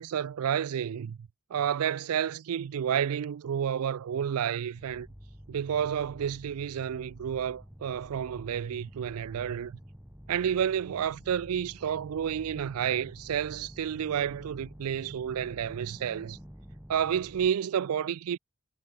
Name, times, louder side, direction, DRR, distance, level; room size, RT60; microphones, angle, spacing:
voice 1, 0.0-5.1 5.5-9.8 10.3-16.4 16.9-18.4, right 8 dB, 70° right, 0.4 m, -30 dB
sound 1, 4.7-17.5, equal, 5° right, 1.2 m, -49 dB
head